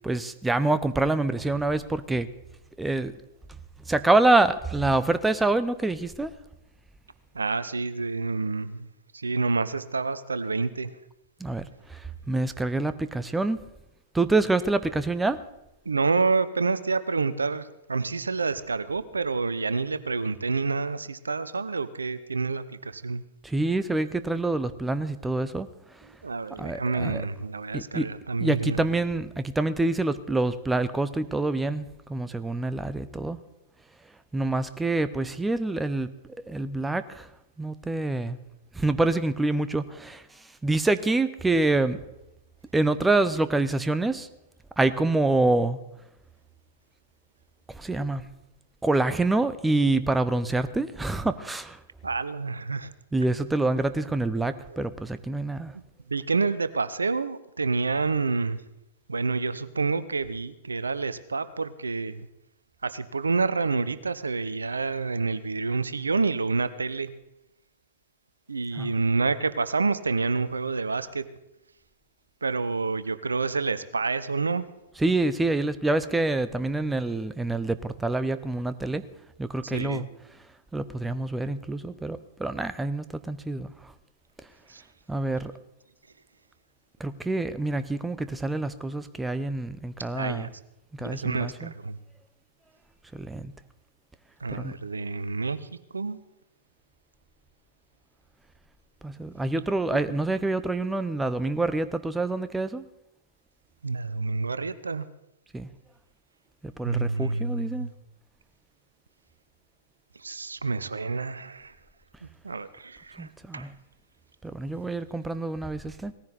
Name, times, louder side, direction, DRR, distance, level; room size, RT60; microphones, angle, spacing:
voice 1, 0.0-2.3 2.8-3.2 3.9-6.3 11.4-13.6 14.1-15.4 23.4-25.7 25.9-26.1 26.6-27.3 27.7-28.1 28.4-33.4 34.3-37.3 37.6-38.4 38.7-42.0 42.7-44.3 44.8-45.8 47.7-48.3 48.8-51.8 53.1-55.8 68.7-68.9 75.0-79.0 79.4-80.1 80.7-83.9 85.1-85.5 87.0-90.5 90.9-91.7 93.1-93.5 94.5-94.7 99.0-102.9 105.5-105.7 106.6-107.9 113.2-113.7 114.4-116.1, right 2 dB, 10° right, 13 dB, 0.7 m, -26 dB
voice 2, 7.3-8.9 9.1-10.9 15.9-23.2 26.2-28.8 52.0-52.9 54.7-54.8 56.1-58.6 59.1-62.2 62.8-67.1 68.5-71.2 72.4-74.6 79.7-80.1 84.7-84.8 90.1-90.5 91.0-92.0 94.4-95.6 95.9-96.2 103.8-105.1 106.8-107.9 110.2-111.7 112.4-113.3 113.5-113.7, right 4 dB, 80° right, 14 dB, 0.7 m, -28 dB
18.5 x 14.5 x 4.1 m, 0.88 s
figure-of-eight pair, 100°, 0 cm